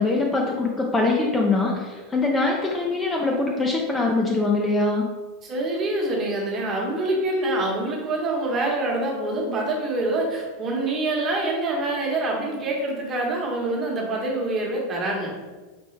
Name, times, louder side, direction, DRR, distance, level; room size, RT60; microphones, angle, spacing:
voice 1, 0.0-5.1, left 3 dB, 15° left, 0 dB, 0.4 m, -23 dB
voice 2, 5.4-15.3, right 2 dB, 30° right, -2 dB, 1.1 m, -25 dB
4.5 x 3.3 x 3.2 m, 1.3 s
supercardioid pair, 140°, 0 cm